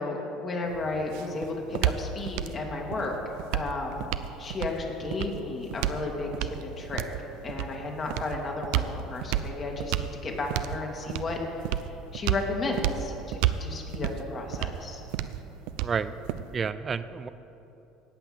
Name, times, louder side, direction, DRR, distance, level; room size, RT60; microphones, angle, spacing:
voice 1, 0.0-3.1 3.5-4.0 4.4-7.0 7.4-11.4 12.1-15.0, left 3 dB, 35° left, 1 dB, 2.2 m, -33 dB
sound 1, 0.7-16.7, right 12 dB, 80° right, 0.5 m, -32 dB
voice 2, 15.8-16.1 16.5-17.3, right 6 dB, 30° right, 14 dB, 0.5 m, -30 dB
17.5 x 5.8 x 7.8 m, 3.0 s
cardioid pair, 120°, 0 cm